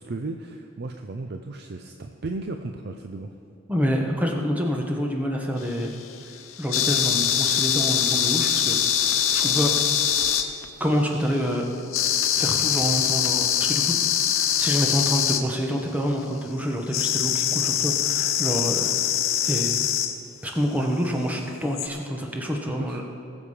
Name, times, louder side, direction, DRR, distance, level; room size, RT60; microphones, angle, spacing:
voice 1, 0.0-3.3 22.7-23.0, right 2 dB, 50° right, 5 dB, 0.5 m, -35 dB
voice 2, 3.7-5.9 6.6-9.7 10.8-11.7 12.3-13.9 14.3-18.9 19.4-19.7 20.4-23.0, equal, 5° right, 1 dB, 1.1 m, -27 dB
sound 1, 5.6-10.8 11.9-15.4 16.9-20.2 21.8-21.9, left 10 dB, 80° left, 0.8 m, -23 dB
19.5 x 7.3 x 5.0 m, 2.7 s
head